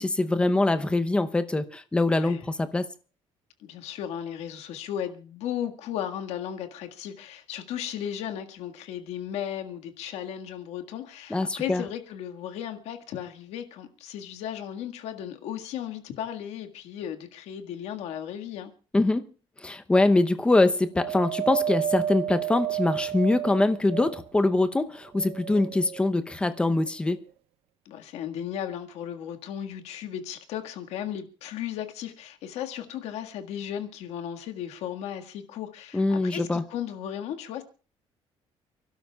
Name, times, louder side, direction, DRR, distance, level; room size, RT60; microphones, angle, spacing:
voice 1, 0.0-2.9 11.3-11.8 18.9-19.2 19.6-27.2 35.9-36.6, left 2 dB, 10° left, 0.7 m, -23 dB
voice 2, 2.1-2.4 3.6-18.7 27.9-37.6, left 10 dB, 85° left, 1.8 m, -35 dB
Wind, 21.0-24.5 25.1-26.1 26.9-27.0, right 11 dB, 70° right, 0.7 m, -31 dB
29.5 x 12.0 x 2.4 m
cardioid pair, 175°, 11 cm